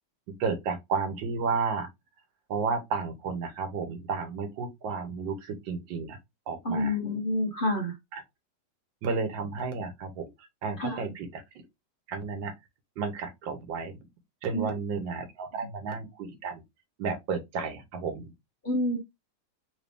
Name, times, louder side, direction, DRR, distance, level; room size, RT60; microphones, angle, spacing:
voice 1, 0.4-1.9 2.5-6.2 6.5-7.0 8.1-8.2 9.0-11.4 12.1-12.5 13.0-14.1 14.4-16.6 17.0-18.3, right 5 dB, 85° right, 1.7 m, -32 dB
voice 2, 6.6-8.0 10.8-11.1 14.5-14.7 18.6-19.0, left 1 dB, 35° left, 1.0 m, -28 dB
3.7 x 2.7 x 3.3 m
omnidirectional pair, 2.0 m